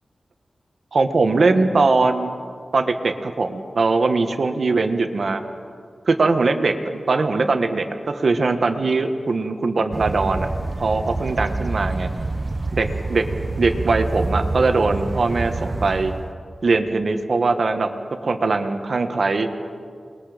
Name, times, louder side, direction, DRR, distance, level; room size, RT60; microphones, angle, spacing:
voice 1, 0.9-2.3 2.7-5.4 6.1-10.5 10.8-12.1 12.7-13.3 13.6-16.1 16.6-17.9 18.2-19.5, right 3 dB, 65° right, 6 dB, 1.6 m, -21 dB
sound 1, 9.9-16.3, right 3 dB, 35° right, 1.0 m, -27 dB
28.5 x 21.5 x 5.2 m, 2.2 s
wide cardioid pair, 100°, 0 cm